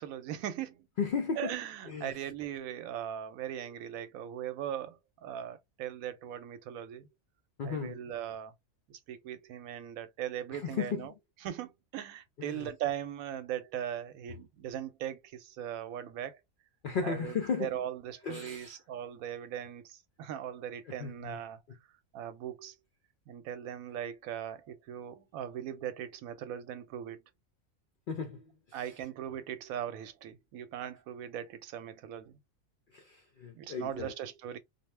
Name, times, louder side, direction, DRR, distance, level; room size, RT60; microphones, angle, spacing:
voice 1, 0.0-0.9 1.4-7.1 7.6-8.5 8.9-11.1 11.4-16.4 17.0-21.6 22.1-22.7 23.3-27.2 28.7-32.3 33.5-34.6, right 10 dB, 90° right, 1.0 m, -39 dB
voice 2, 1.0-1.6 1.9-2.1 7.6-8.0 10.5-11.1 12.4-12.7 16.8-17.7 18.2-18.8 21.0-21.4 28.1-28.4 28.7-28.8 32.9-34.1, left 5 dB, 75° left, 0.4 m, -35 dB
2.6 x 2.0 x 3.1 m
omnidirectional pair, 1.4 m